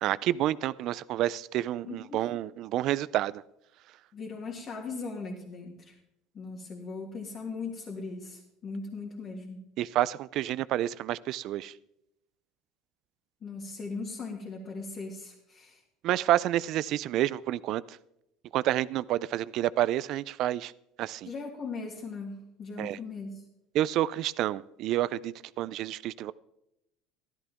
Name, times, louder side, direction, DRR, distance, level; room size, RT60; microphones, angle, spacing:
voice 1, 0.0-3.4 9.8-11.7 16.0-17.8 18.5-20.7 21.0-21.3 22.8-23.0 23.7-26.3, right 13 dB, 55° right, 18 dB, 0.4 m, -29 dB
voice 2, 1.9-2.4 4.1-6.0 6.3-9.6 13.4-15.8 21.3-23.4, left 4 dB, 35° left, -2 dB, 2.1 m, -39 dB
13.5 x 13.0 x 3.5 m, 0.84 s
supercardioid pair, 120°, 0 cm